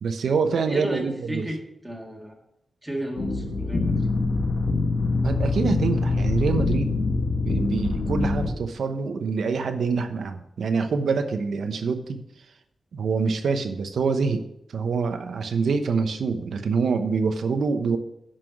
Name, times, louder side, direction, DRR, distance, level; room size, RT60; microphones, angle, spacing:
voice 1, 0.0-1.5 5.2-7.0 7.4-12.2 12.9-14.4 14.7-18.0, right 5 dB, 75° right, 8 dB, 1.0 m, -25 dB
voice 2, 0.7-1.6 1.8-2.4 2.8-4.1, right 1 dB, 10° right, 0 dB, 2.0 m, -33 dB
sound 1, 3.2-8.5, left 3 dB, 45° left, 1.9 m, -24 dB
9.9 x 6.0 x 6.0 m, 0.81 s
wide cardioid pair, 155°, 0 cm